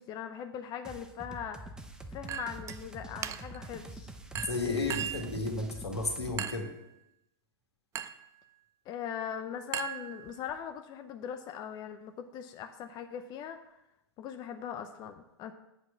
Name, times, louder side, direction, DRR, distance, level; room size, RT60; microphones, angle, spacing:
voice 1, 0.0-1.6 2.1-4.1 8.9-13.6 14.2-15.5, left 8 dB, 30° left, 7 dB, 0.6 m, -40 dB
sound 1, 0.8-6.4, right 1 dB, 5° right, 0.8 m, -45 dB
Chink clink, 2.3-2.8 3.2-3.7 4.4-5.3 6.4-6.8 8.0-8.3 9.7-10.5, right 10 dB, 20° right, 0.4 m, -38 dB
voice 2, 4.5-6.7, left 3 dB, 80° left, 2 dB, 1.9 m, -33 dB
7.9 x 4.8 x 6.9 m, 0.88 s
figure-of-eight pair, 95°, 14 cm